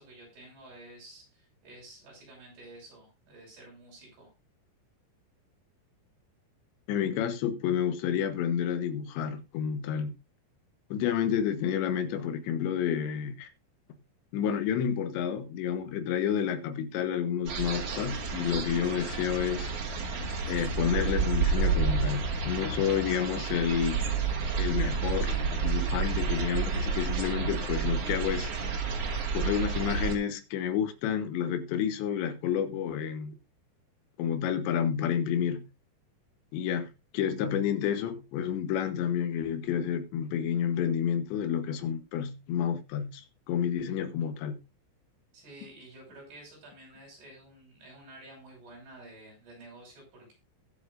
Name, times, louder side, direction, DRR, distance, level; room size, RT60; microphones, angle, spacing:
voice 1, 0.0-4.3 45.3-50.3, right 1 dB, 70° right, 8.5 m, -51 dB
voice 2, 6.9-10.1 10.9-13.5 14.3-19.7 20.5-24.0 24.6-28.5 29.3-33.4 34.2-35.7 36.5-44.6, left 8 dB, 85° left, 3.5 m, -30 dB
sound 1, 17.5-30.2, right 5 dB, 55° right, 1.8 m, -30 dB
20.0 x 7.6 x 2.6 m
omnidirectional pair, 4.9 m